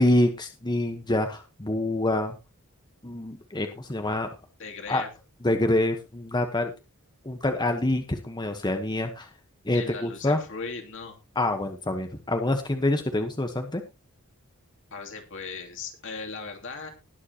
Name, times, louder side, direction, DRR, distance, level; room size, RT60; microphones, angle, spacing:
voice 1, 0.0-2.3 3.0-4.3 4.9-5.0 5.4-6.7 7.2-9.3 9.6-10.4 11.4-13.8, left 1 dB, 20° left, 6 dB, 1.1 m, -26 dB
voice 2, 4.6-5.1 9.7-11.2 14.9-16.9, left 4 dB, 60° left, 3 dB, 2.7 m, -38 dB
20.0 x 7.5 x 2.9 m, 0.27 s
head